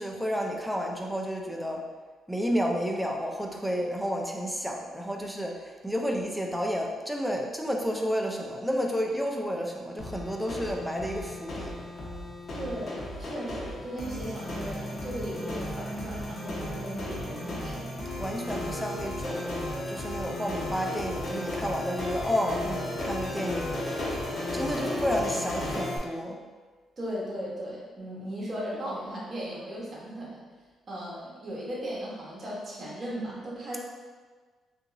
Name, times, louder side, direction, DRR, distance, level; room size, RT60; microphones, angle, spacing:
voice 1, 0.0-1.8 2.3-11.7 18.2-19.6 19.9-23.7 24.5-26.4, equal, ahead, 1 dB, 0.5 m, -31 dB
sound 1, 10.0-26.0, left 1 dB, 45° left, 0.9 m, -34 dB
voice 2, 12.5-18.0 24.8-25.1 27.0-30.4 30.9-33.8, equal, 40° right, -5 dB, 1.1 m, -37 dB
3.5 x 2.9 x 2.6 m, 1.4 s
cardioid pair, 90°, 0 cm